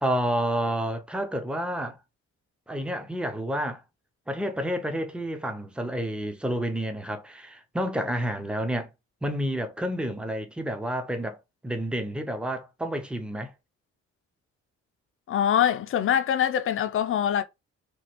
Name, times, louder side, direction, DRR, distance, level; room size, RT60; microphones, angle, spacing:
voice 1, 0.0-2.0 2.7-3.8 4.3-8.9 9.2-11.4 11.6-13.5, equal, 5° right, 0.6 m, -29 dB
voice 2, 15.3-17.4, left 9 dB, 45° left, 0.5 m, -24 dB
3.0 x 2.4 x 2.9 m
cardioid pair, 90°, 30 cm